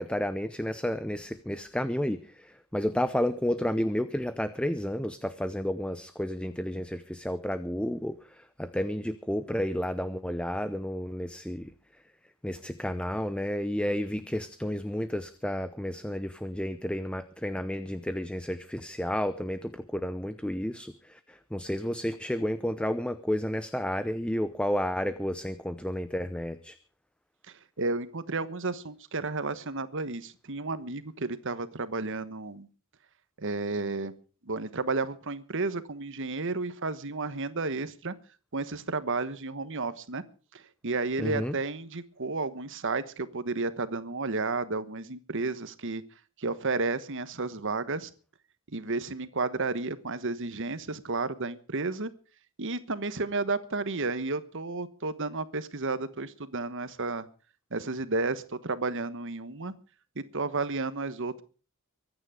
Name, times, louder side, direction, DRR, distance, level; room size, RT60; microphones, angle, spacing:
voice 1, 0.0-11.7 12.4-26.8 41.2-41.5, equal, 5° left, 12 dB, 0.7 m, -31 dB
voice 2, 27.5-32.7 33.4-34.1 34.4-38.1 38.5-40.2 40.5-46.0 46.4-48.1 48.7-52.1 52.6-57.3 57.7-59.7 60.1-61.4, right 3 dB, 60° right, 13 dB, 1.3 m, -32 dB
23.5 x 9.6 x 5.0 m, 0.39 s
head